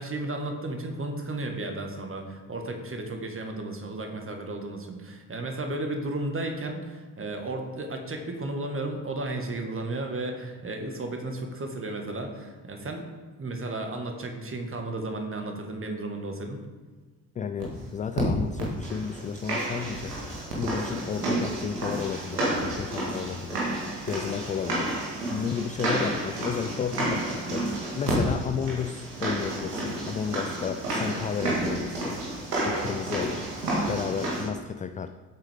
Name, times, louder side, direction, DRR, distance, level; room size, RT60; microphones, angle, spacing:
voice 1, 0.0-13.1 13.4-16.6, right 2 dB, 25° right, 4 dB, 1.9 m, -34 dB
voice 2, 17.4-24.9 25.3-32.2 32.6-35.1, left 7 dB, 20° left, 9 dB, 0.3 m, -33 dB
sound 1, 17.6-17.7 18.2-18.3 18.6-34.4, right 1 dB, 80° right, 2.2 m, -30 dB
13.0 x 8.0 x 3.7 m, 1.3 s
figure-of-eight pair, 45°, 47 cm